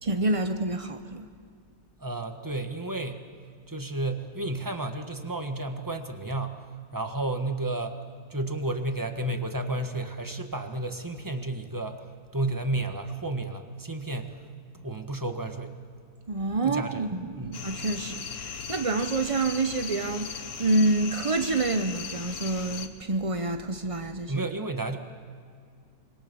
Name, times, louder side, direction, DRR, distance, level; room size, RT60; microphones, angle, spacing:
voice 1, 0.0-1.3 16.3-24.4, right 2 dB, 55° right, 7 dB, 0.3 m, -28 dB
voice 2, 2.0-3.2 3.7-6.6 6.9-8.0 8.3-12.0 12.3-14.4 14.8-15.8 16.6-17.1 17.4-17.7 24.3-25.0, right 2 dB, 10° right, 6 dB, 1.3 m, -32 dB
sound 1, 17.5-22.9, left 6 dB, 55° left, 1.6 m, -38 dB
25.5 x 23.5 x 7.0 m, 2.2 s
omnidirectional pair, 1.9 m